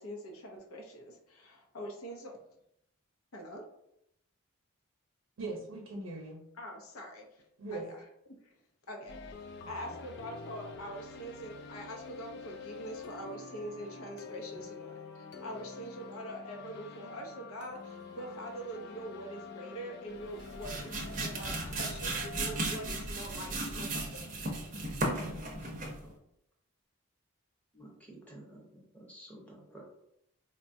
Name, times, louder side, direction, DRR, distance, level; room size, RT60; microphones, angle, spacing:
voice 1, 0.0-2.4 3.3-3.6 6.6-7.4 7.7-7.9 8.4-8.5 8.9-24.2, equal, 80° left, 1 dB, 0.7 m, -44 dB
voice 2, 5.4-6.4 7.6-7.9 9.6-9.7 14.5-14.6 20.7-20.9 22.4-22.5 25.2-26.1, right 2 dB, 85° right, -1 dB, 0.7 m, -42 dB
sound 1, 9.1-23.9, left 4 dB, 50° left, 0.3 m, -47 dB
sound 2, 20.3-26.1, right 2 dB, 35° right, 0.6 m, -36 dB
voice 3, 27.7-29.9, right 1 dB, 5° left, -3 dB, 0.8 m, -52 dB
4.2 x 2.2 x 2.6 m, 0.78 s
head